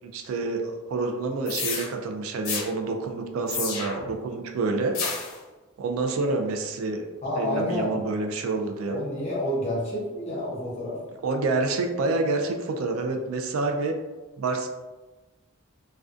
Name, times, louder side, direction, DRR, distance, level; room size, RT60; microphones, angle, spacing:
voice 1, 0.0-4.9 5.8-7.1 7.4-9.0 11.2-13.9 14.4-14.7, right 3 dB, 75° right, 4 dB, 0.3 m, -28 dB
sound 1, 1.5-1.9 2.4-2.7 3.5-4.1 4.9-5.4, left 5 dB, 70° left, 0.5 m, -30 dB
voice 2, 7.2-8.0 8.9-11.0, left 1 dB, 30° left, -5 dB, 0.7 m, -29 dB
2.3 x 2.2 x 2.4 m, 1.2 s
head